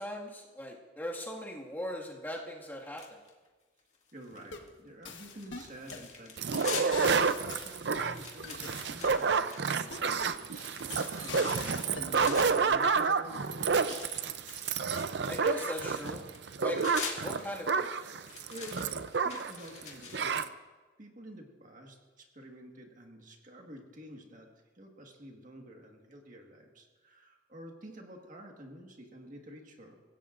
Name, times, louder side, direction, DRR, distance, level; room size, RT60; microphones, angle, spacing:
voice 1, 0.0-3.2 15.3-16.2 16.6-16.8 17.2-17.9, left 1 dB, 10° left, -3 dB, 1.9 m, -39 dB
sound 1, 3.0-3.5 3.9-4.7 5.0-7.1 7.4-7.5 7.8-12.7 13.7-17.7 18.3-20.4, left 5 dB, 35° left, 2.2 m, -44 dB
voice 2, 4.1-13.8 18.5-18.9 19.2-20.6 21.0-24.5 24.7-30.0, right 1 dB, 45° right, 1 dB, 1.7 m, -50 dB
sound 2, 4.3-4.7 5.1-6.1 6.5-6.6 6.9-9.2 9.9-10.4 10.9-12.4, left 5 dB, 85° left, 1.3 m, -44 dB
sound 3, 6.4-19.6 19.8-19.9 20.1-20.5, right 5 dB, 65° right, 0.6 m, -29 dB
25.0 x 16.0 x 2.6 m, 1.3 s
head